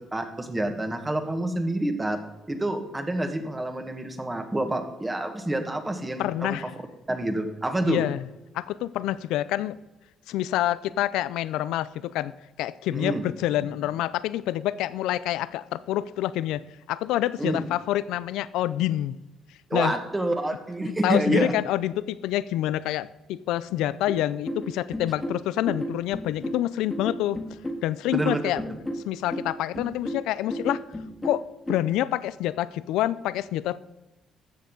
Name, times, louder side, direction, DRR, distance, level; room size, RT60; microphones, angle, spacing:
voice 1, 0.1-2.2 2.5-6.6 7.1-8.1 12.9-13.2 17.4-17.6 19.7-21.5 28.1-28.6, right 1 dB, 15° right, 6 dB, 1.6 m, -27 dB
voice 2, 6.2-6.7 7.8-8.2 8.5-9.8 10.3-12.3 12.6-16.6 16.9-19.1 19.7-19.9 21.0-27.4 27.8-28.6 29.1-30.8 31.2-33.8, left 13 dB, 90° left, 18 dB, 0.4 m, -27 dB
sound 1, 24.1-31.7, equal, 15° left, 1.8 m, -34 dB
13.0 x 7.4 x 3.9 m, 1.0 s
cardioid pair, 85°, 0 cm